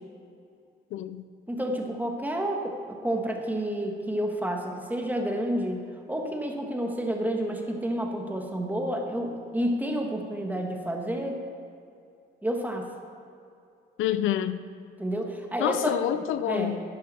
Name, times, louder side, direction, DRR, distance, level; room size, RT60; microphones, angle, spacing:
voice 1, 0.9-1.2 14.0-14.6 15.6-16.9, left 11 dB, 85° left, 13 dB, 0.6 m, -28 dB
voice 2, 1.5-11.4 12.4-12.9 15.0-16.0 16.5-16.7, right 1 dB, 10° right, 2 dB, 1.6 m, -30 dB
11.5 x 10.5 x 4.3 m, 2.5 s
cardioid pair, 90°, 20 cm